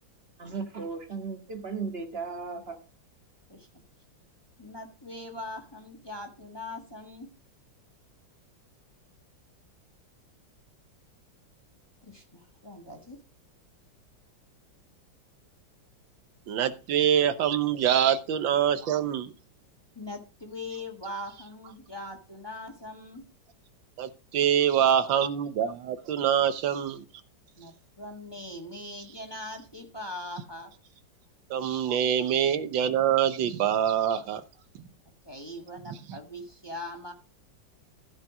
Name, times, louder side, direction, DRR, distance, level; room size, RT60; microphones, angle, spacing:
voice 1, 0.4-2.8, right 5 dB, 35° right, 5 dB, 1.6 m, -36 dB
voice 2, 4.6-7.3 12.0-13.2 19.9-23.2 27.6-30.7 35.2-37.1, left 1 dB, 15° left, 2 dB, 1.6 m, -41 dB
voice 3, 16.5-19.3 24.0-27.0 31.5-34.4 34.7-34.8 36.1-36.2, right 9 dB, 85° right, 10 dB, 1.7 m, -25 dB
14.5 x 5.4 x 5.0 m, 0.34 s
omnidirectional pair, 2.0 m